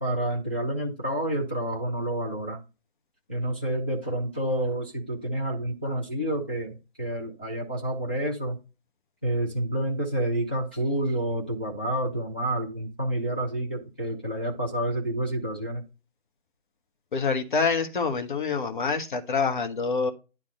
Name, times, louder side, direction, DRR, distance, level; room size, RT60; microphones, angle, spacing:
voice 1, 0.0-2.6 3.3-8.6 9.2-15.8, right 1 dB, 10° left, -4 dB, 0.4 m, -29 dB
voice 2, 17.1-20.1, left 5 dB, 45° left, 7 dB, 1.6 m, -26 dB
10.0 x 3.5 x 5.2 m, 0.29 s
figure-of-eight pair, 145°, 34 cm